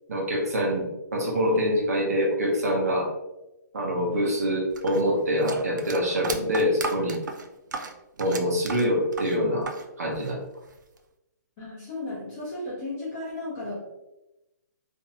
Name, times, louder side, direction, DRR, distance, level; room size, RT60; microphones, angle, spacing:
voice 1, 0.1-0.9 1.1-3.1 3.7-7.2 8.2-9.6 10.0-10.4, equal, 55° right, -1 dB, 0.8 m, -25 dB
sound 1, 4.8-9.9 10.1-11.0, right 4 dB, 80° right, 0.4 m, -35 dB
voice 2, 11.6-13.8, left 2 dB, 15° left, -8 dB, 0.7 m, -34 dB
2.6 x 2.1 x 2.8 m, 0.95 s
hypercardioid pair, 180°, 10 cm